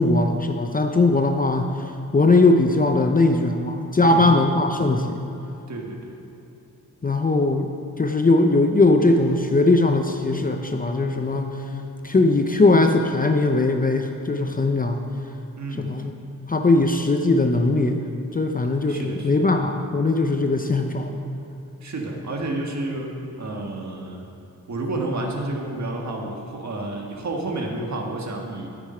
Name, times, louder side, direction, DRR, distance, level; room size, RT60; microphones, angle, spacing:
voice 1, 0.0-1.7 2.1-5.2 7.0-7.7 8.0-11.6 12.0-15.0 15.8-16.1 16.5-21.2, left 2 dB, 25° left, 5 dB, 0.6 m, -20 dB
voice 2, 4.0-4.3 5.7-6.1 15.6-16.0 18.9-19.3 21.8-24.2 24.7-28.7, right 2 dB, 55° right, 1 dB, 1.5 m, -30 dB
sound 1, 8.9-14.9, left 5 dB, 80° left, 0.7 m, -39 dB
9.2 x 8.4 x 4.4 m, 2.9 s
cardioid pair, 75°, 34 cm